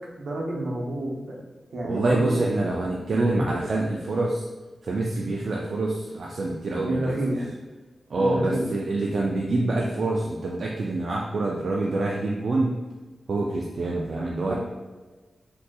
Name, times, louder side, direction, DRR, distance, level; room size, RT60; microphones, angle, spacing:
voice 1, 0.2-1.3 1.7-2.4 3.1-3.5 6.8-7.4 8.1-8.7 14.5-14.6, right 1 dB, 80° right, -2 dB, 0.7 m, -29 dB
voice 2, 1.8-4.5 4.8-7.4 8.1-12.8 13.3-14.6, right 2 dB, 65° right, -2 dB, 0.3 m, -26 dB
3.8 x 2.7 x 2.3 m, 1.3 s
wide cardioid pair, 100°, 0 cm